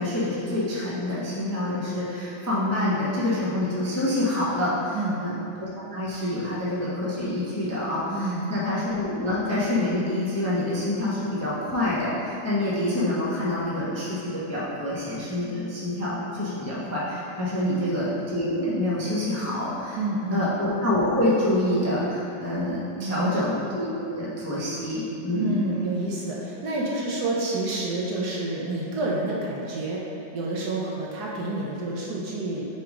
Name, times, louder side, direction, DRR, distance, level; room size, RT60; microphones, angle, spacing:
voice 1, 0.0-20.0 20.3-25.6, left 1 dB, 15° left, -8 dB, 0.6 m, -27 dB
voice 2, 8.1-8.6 17.6-17.9 20.0-20.5 23.0-23.4 25.3-30.0 30.3-32.7, right 2 dB, 60° right, -4 dB, 1.3 m, -29 dB
6.7 x 3.6 x 4.9 m, 2.8 s
omnidirectional pair, 2.0 m